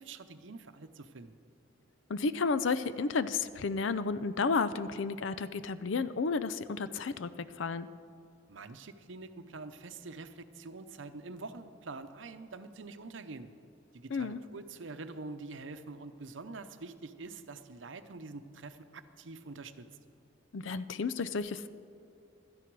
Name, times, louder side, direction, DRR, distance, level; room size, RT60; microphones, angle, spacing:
voice 1, 0.0-1.3 8.5-13.5 13.9-19.9, right 3 dB, 75° right, 10 dB, 0.7 m, -45 dB
voice 2, 2.1-7.9 14.1-14.4 20.5-21.7, left 4 dB, 80° left, 14 dB, 0.5 m, -32 dB
16.0 x 12.5 x 4.7 m, 2.5 s
head